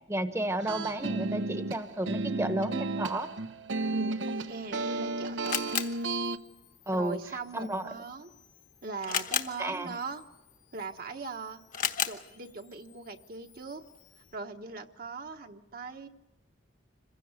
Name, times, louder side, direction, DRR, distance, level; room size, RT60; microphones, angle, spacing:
voice 1, 0.1-3.3 6.9-7.2 7.5-7.9 9.6-9.9, right 1 dB, 15° right, 8 dB, 1.0 m, -32 dB
sound 1, 0.6-6.4, right 2 dB, 85° right, 0.8 m, -33 dB
voice 2, 3.9-5.7 6.9-8.3 8.8-10.2 10.7-11.6 12.0-13.8 14.3-16.1, right 4 dB, 50° right, 4 dB, 1.1 m, -40 dB
Camera, 4.5-14.4, left 8 dB, 45° left, 1.1 m, -39 dB
26.5 x 16.0 x 8.1 m, 1.0 s
head